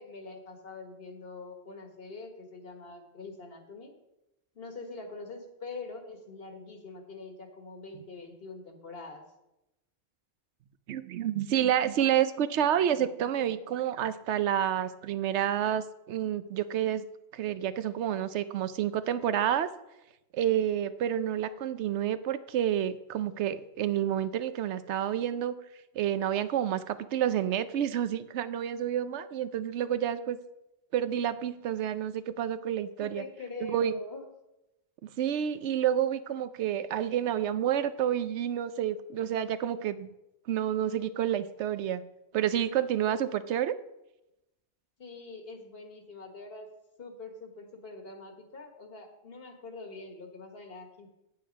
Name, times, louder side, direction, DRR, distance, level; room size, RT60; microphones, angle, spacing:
voice 1, 0.0-3.9 4.5-9.2 33.0-34.2 45.0-46.7 47.0-51.1, left 3 dB, 60° left, 5 dB, 1.7 m, -44 dB
voice 2, 10.9-17.0 17.3-19.7 20.3-25.6 25.9-30.4 30.9-33.2 33.6-33.9 35.0-40.1 40.5-42.0 42.3-43.7, right 10 dB, 85° right, 13 dB, 0.9 m, -29 dB
9.2 x 8.5 x 5.1 m, 0.92 s
omnidirectional pair, 1.1 m